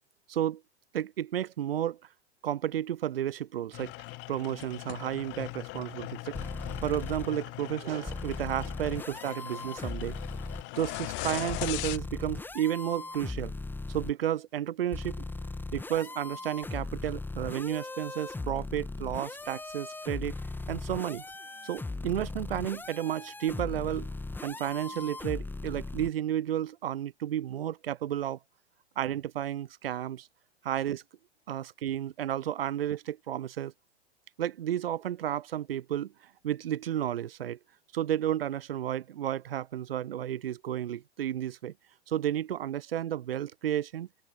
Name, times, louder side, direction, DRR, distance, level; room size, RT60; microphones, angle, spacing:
voice 1, 0.3-0.6 0.9-2.0 2.4-3.9 4.3-6.4 6.8-10.2 10.8-13.5 13.9-15.2 15.7-20.3 20.7-21.2 21.6-24.1 24.4-28.4 29.0-30.3 30.6-31.0 31.5-33.7 34.4-36.1 36.4-37.6 37.9-41.7 42.1-44.1, right 11 dB, 60° right, 1.9 m, -32 dB
sound 1, 3.7-12.0, left 26 dB, 35° left, 1.5 m, -40 dB
sound 2, 6.3-7.3 8.1-10.6 11.5-14.1 14.9-26.1, left 3 dB, 5° left, 1.8 m, -38 dB
open air
figure-of-eight pair, 95°, 33 cm